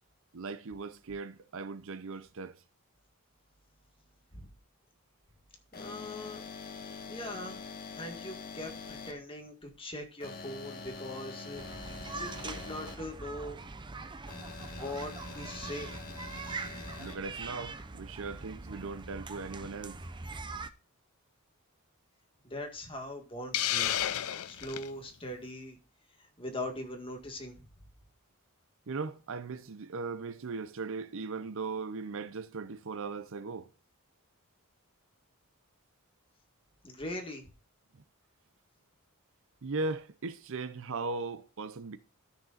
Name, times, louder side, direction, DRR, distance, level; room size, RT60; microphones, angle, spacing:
voice 1, 0.3-2.6 17.0-20.0 28.9-33.7 39.6-42.0, right 4 dB, 65° right, 0.6 m, -38 dB
sound 1, 5.7-9.1 10.2-12.9 14.3-17.1, left 4 dB, 45° left, 1.5 m, -44 dB
voice 2, 5.7-6.4 7.1-7.6 8.0-13.6 14.7-15.9 22.4-23.9 24.5-25.8 26.4-27.7 36.8-37.4, left 1 dB, 25° left, 1.8 m, -41 dB
sound 2, 11.6-20.7, right 3 dB, 20° right, 0.6 m, -43 dB
Hiss, 23.5-24.9, left 11 dB, 75° left, 0.5 m, -31 dB
13.5 x 6.5 x 2.5 m
head